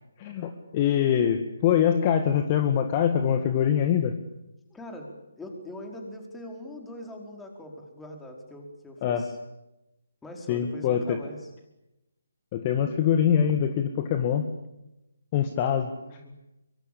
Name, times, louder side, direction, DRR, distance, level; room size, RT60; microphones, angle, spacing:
voice 1, 0.2-4.2 9.0-9.3 10.5-11.2 12.5-14.5 15.3-15.9, left 9 dB, 30° left, 7 dB, 2.0 m, -24 dB
voice 2, 4.7-9.4 10.2-11.5 16.0-16.3, left 1 dB, 5° left, 2 dB, 4.7 m, -42 dB
24.5 x 23.5 x 8.6 m, 0.92 s
figure-of-eight pair, 145°, 0 cm